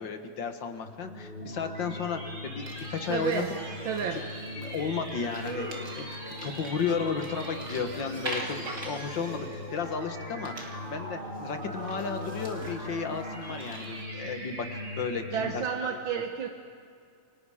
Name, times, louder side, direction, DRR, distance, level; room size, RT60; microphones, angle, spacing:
voice 1, 0.0-3.4 4.6-8.6 8.8-10.5 10.8-15.6 15.9-16.0, left 6 dB, 70° left, 7 dB, 2.1 m, -34 dB
sound 1, 0.8-15.6, left 2 dB, 40° left, 6.0 m, -42 dB
sound 2, 1.0-15.7, right 1 dB, 55° right, 5.2 m, -43 dB
sound 3, 2.6-10.2 10.4-11.1 11.3-11.4 11.8-14.0, right 2 dB, 40° right, 2.7 m, -42 dB
voice 2, 3.1-3.5 3.9-4.2 15.3-16.5, right 7 dB, 90° right, 4 dB, 1.9 m, -30 dB
29.0 x 24.5 x 5.0 m, 2.4 s
omnidirectional pair, 2.1 m